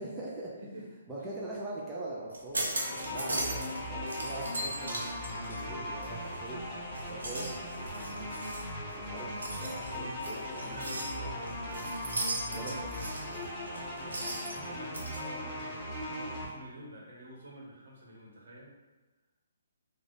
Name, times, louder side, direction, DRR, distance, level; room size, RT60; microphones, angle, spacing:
voice 1, 0.0-0.5 1.1-8.6 8.9-9.3 9.6-11.3 12.5-13.4, right 2 dB, 15° right, -6 dB, 0.6 m, -43 dB
voice 2, 0.6-0.9 1.2-1.3 10.6-12.0 12.4-13.0 13.8-18.7, right 1 dB, 65° right, -3 dB, 1.2 m, -49 dB
sound 1, 2.3-3.8 4.1-6.5 6.9-15.2, right 1 dB, 85° right, 0.8 m, -38 dB
sound 2, 2.7-16.4, left 1 dB, 15° left, 1.4 m, -38 dB
3.1 x 2.4 x 4.0 m, 1.2 s
hypercardioid pair, 140°, 0 cm